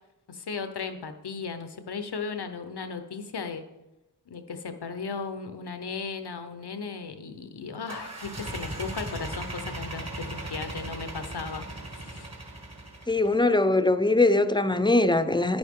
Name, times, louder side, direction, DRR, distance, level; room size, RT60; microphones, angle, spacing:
voice 1, 0.3-3.6 4.3-11.6 11.9-12.3, left 5 dB, 85° left, 9 dB, 0.9 m, -36 dB
sound 1, 7.9-13.4, right 1 dB, 40° right, 1.9 m, -37 dB
voice 2, 13.1-15.6, left 2 dB, 10° left, 11 dB, 0.6 m, -22 dB
10.0 x 8.9 x 3.7 m, 0.98 s
wide cardioid pair, 45°, 39 cm